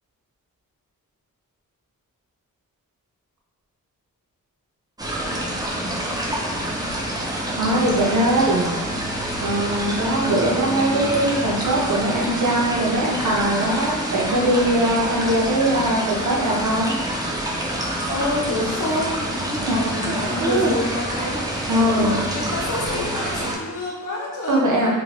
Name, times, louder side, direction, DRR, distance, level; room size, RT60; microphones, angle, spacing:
sound 1, 5.0-23.6, right 1 dB, 10° right, 0.4 m, -27 dB
voice 1, 7.6-8.7 9.4-17.0 19.6-19.7 20.1-20.7 21.7-22.2 24.5-24.9, right 1 dB, 60° right, -2 dB, 0.7 m, -21 dB
voice 2, 18.1-24.9, left 1 dB, 65° left, -4 dB, 0.8 m, -28 dB
3.0 x 2.2 x 2.9 m, 1.3 s
wide cardioid pair, 110°, 34 cm